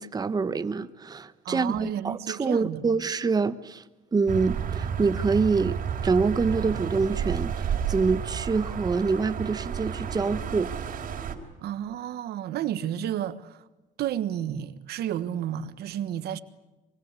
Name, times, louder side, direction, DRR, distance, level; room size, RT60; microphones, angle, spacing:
voice 1, 0.0-3.8 4.1-5.8 6.0-10.7, right 4 dB, 25° right, 1.1 m, -26 dB
voice 2, 1.4-2.8 11.6-13.6 14.0-16.4, right 11 dB, 70° right, 1.5 m, -31 dB
sound 1, 4.3-11.4, right 8 dB, 55° right, 3.7 m, -31 dB
24.5 x 24.5 x 8.3 m
cardioid pair, 110°, 17 cm